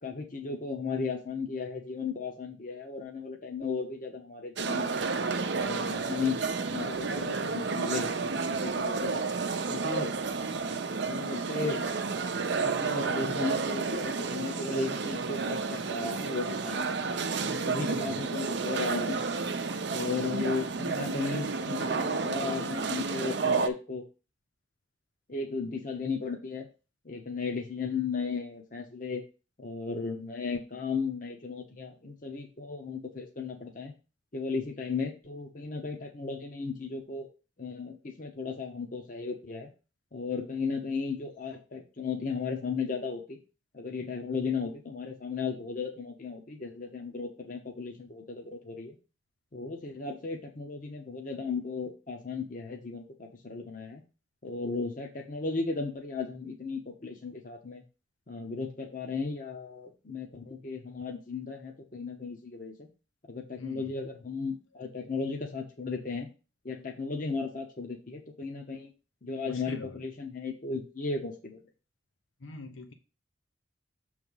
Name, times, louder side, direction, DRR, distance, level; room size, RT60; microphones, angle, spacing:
voice 1, 0.0-5.2 5.6-6.4 6.7-9.3 9.7-10.1 11.1-11.8 12.6-16.9 17.4-19.2 19.9-24.0 25.3-26.7 27.0-29.2 29.6-33.9 34.3-37.3 37.6-39.7 40.1-43.4 43.7-48.9 49.5-54.0 54.4-57.8 58.3-62.9 63.3-66.3 66.6-68.9 69.2-71.6, left 4 dB, 45° left, 2 dB, 0.9 m, -35 dB
sound 1, 4.6-23.7, right 4 dB, 65° right, 0.6 m, -31 dB
voice 2, 17.8-18.2 63.6-64.0 69.4-70.0 72.4-72.9, left 2 dB, 85° left, 6 dB, 0.9 m, -43 dB
6.9 x 3.3 x 5.4 m, 0.32 s
head